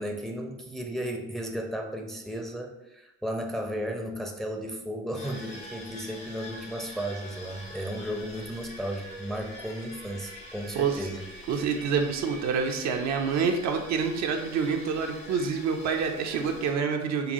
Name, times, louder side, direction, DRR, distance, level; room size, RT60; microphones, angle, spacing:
voice 1, 0.0-11.3, equal, ahead, 2 dB, 0.6 m, -34 dB
sound 1, 5.1-16.7, equal, 80° left, 1.0 m, -45 dB
voice 2, 11.5-17.3, right 6 dB, 55° right, 4 dB, 0.6 m, -27 dB
5.2 x 2.3 x 2.6 m, 0.92 s
hypercardioid pair, 55°, 33 cm